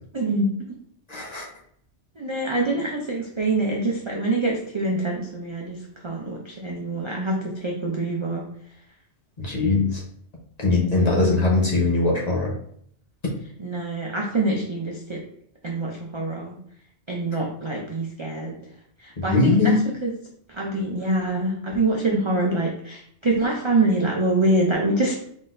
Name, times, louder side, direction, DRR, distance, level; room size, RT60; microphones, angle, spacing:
voice 1, 0.1-0.5 2.2-5.8 6.0-8.4 10.8-11.2 13.6-15.2 15.6-16.6 17.1-18.6 19.0-19.8 20.0-20.1 20.5-25.2, right 2 dB, 35° right, -1 dB, 0.4 m, -25 dB
voice 2, 1.1-1.5 9.4-10.0 10.6-12.5 19.2-19.8, left 3 dB, 35° left, -3 dB, 1.0 m, -21 dB
4.0 x 3.9 x 2.6 m, 0.65 s
omnidirectional pair, 1.2 m